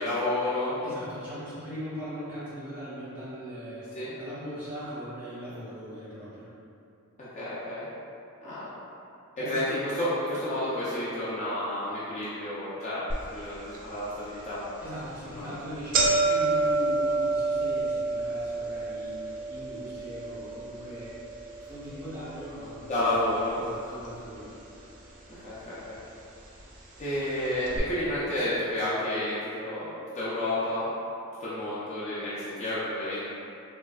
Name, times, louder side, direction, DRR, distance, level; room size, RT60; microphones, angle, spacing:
voice 1, 0.0-0.7 3.9-4.1 7.2-7.9 8.4-8.7 9.5-13.0 13.3-14.6 15.3-15.5 22.9-23.6 25.3-26.0 27.0-30.9 31.4-33.2, left 1 dB, 35° left, -10 dB, 0.4 m, -30 dB
voice 2, 0.8-3.9 4.1-6.5 9.4-9.6 14.8-21.1 21.6-24.6, equal, 10° right, -12 dB, 0.7 m, -40 dB
sound 1, 13.1-13.2 13.7-13.8 14.7-14.9 15.2-15.3 15.6-23.8 24.0-24.8 25.6-25.7 26.6-26.7 27.0-27.1 27.7-27.8, right 3 dB, 40° right, 0.3 m, -29 dB
3.1 x 2.5 x 2.3 m, 2.6 s
head